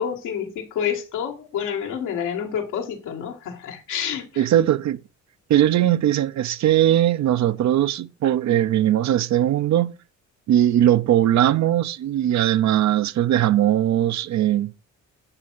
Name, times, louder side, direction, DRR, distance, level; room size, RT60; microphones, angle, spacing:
voice 1, 0.0-4.5, left 8 dB, 90° left, 1.9 m, -28 dB
voice 2, 4.4-5.0 5.5-9.9 10.5-14.7, right 12 dB, 65° right, 0.7 m, -19 dB
8.9 x 4.7 x 6.2 m
cardioid pair, 90°, 30 cm